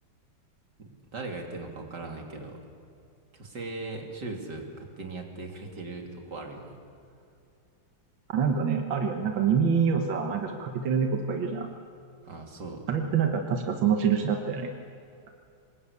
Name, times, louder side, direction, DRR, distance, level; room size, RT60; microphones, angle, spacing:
voice 1, 0.8-2.6 3.3-6.7 12.2-12.9, right 3 dB, 60° right, 2 dB, 3.5 m, -39 dB
voice 2, 8.3-11.7 12.9-14.7, right 6 dB, 75° right, 4 dB, 2.0 m, -26 dB
26.0 x 21.5 x 8.4 m, 2.5 s
omnidirectional pair, 2.1 m